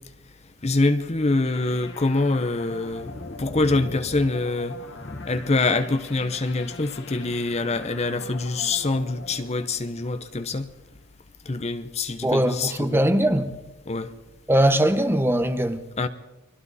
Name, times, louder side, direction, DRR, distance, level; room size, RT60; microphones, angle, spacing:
voice 1, 0.6-10.7 11.5-13.0 13.9-14.1 16.0-16.1, left 3 dB, 30° left, 0.8 m, -25 dB
sound 1, 1.5-10.8, left 3 dB, 60° left, 2.2 m, -43 dB
voice 2, 12.2-13.5 14.5-15.8, right 1 dB, 10° right, 1.1 m, -21 dB
30.0 x 23.0 x 4.2 m
head